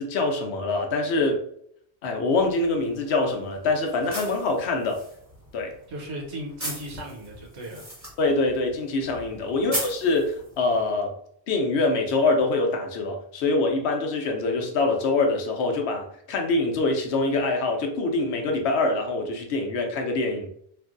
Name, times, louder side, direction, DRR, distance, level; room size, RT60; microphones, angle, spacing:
voice 1, 0.0-1.4 2.0-5.0 5.5-5.7 8.2-11.1 11.5-20.5, left 3 dB, 75° left, 3 dB, 0.9 m, -24 dB
sound 1, 2.3-10.9, right 1 dB, 15° right, 1.1 m, -39 dB
voice 2, 5.9-7.9 9.5-9.8, equal, 80° right, -1 dB, 1.1 m, -37 dB
3.1 x 2.6 x 2.4 m, 0.67 s
omnidirectional pair, 1.1 m